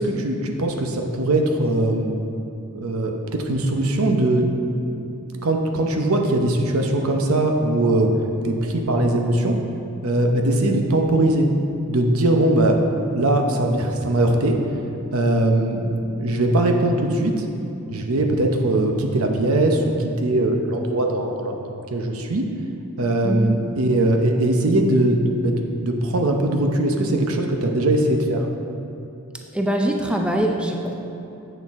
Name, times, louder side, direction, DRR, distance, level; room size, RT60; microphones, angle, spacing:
voice 1, 0.0-2.1 2.7-4.5 4.9-5.0 5.4-8.1 8.4-9.5 10.0-11.5 11.9-12.8 13.1-14.5 15.1-17.4 17.9-22.4 23.0-28.5, right 1 dB, 80° right, 3 dB, 0.8 m, -20 dB
voice 2, 29.5-30.9, right 1 dB, 5° right, 1 dB, 0.5 m, -23 dB
8.0 x 6.6 x 3.6 m, 2.9 s
head